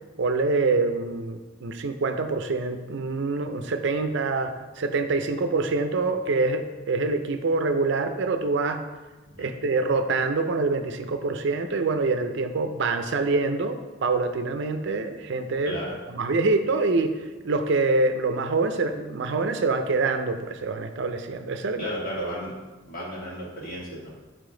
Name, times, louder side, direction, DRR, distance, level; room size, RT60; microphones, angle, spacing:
voice 1, 0.2-8.8 9.4-15.8 16.1-21.9, right 3 dB, 70° right, 8 dB, 0.5 m, -25 dB
voice 2, 15.6-16.0 21.8-22.5 22.8-24.1, equal, 50° left, -5 dB, 2.1 m, -33 dB
6.2 x 5.0 x 3.8 m, 1.2 s
head